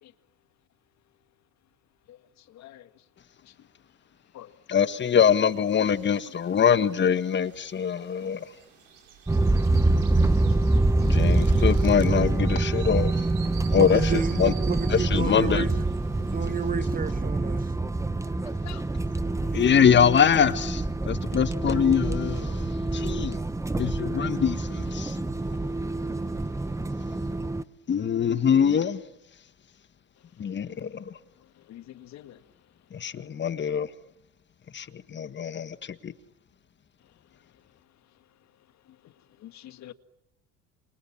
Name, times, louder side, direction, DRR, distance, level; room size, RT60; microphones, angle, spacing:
voice 1, 4.7-8.4 11.0-13.2 13.7-14.5 14.9-15.7 19.5-23.4 23.8-25.2 27.9-29.0 30.4-31.1 32.9-33.9 34.7-36.1, left 7 dB, 30° left, 1.6 m, -24 dB
sound 1, 4.8-16.7, right 9 dB, 80° right, 5.1 m, -50 dB
sound 2, 9.3-27.6, right 2 dB, 10° right, 1.0 m, -26 dB
voice 2, 13.8-15.7 16.3-17.7, right 6 dB, 25° right, 1.3 m, -31 dB
voice 3, 31.7-32.4 39.4-39.9, left 13 dB, 50° left, 1.9 m, -45 dB
28.0 x 27.5 x 7.3 m
supercardioid pair, 100°, 35 cm